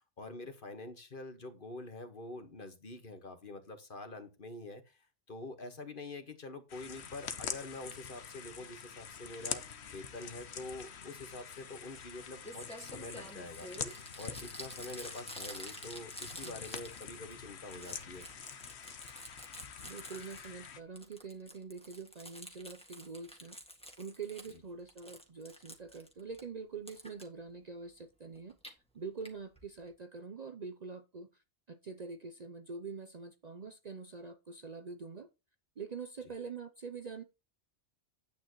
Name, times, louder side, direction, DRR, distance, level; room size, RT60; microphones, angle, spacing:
voice 1, 0.0-5.0 5.3-13.7 14.2-18.3 24.5-24.6, left 2 dB, 45° left, 1.6 m, -46 dB
sound 1, 6.7-20.8, left 7 dB, 65° left, 1.2 m, -45 dB
Crumpling crinkling, 12.2-12.3 12.4-17.3 17.6-20.7 21.0-24.6 24.9-26.4 26.9-27.2 28.4-28.7 29.2-29.3 29.6-29.7 29.9-30.0, equal, 5° left, 1.8 m, -49 dB
voice 2, 19.8-23.6 24.0-28.6 28.9-31.3 31.7-35.3 35.8-37.2, right 5 dB, 45° right, 0.7 m, -45 dB
10.5 x 9.0 x 3.0 m
omnidirectional pair, 1.2 m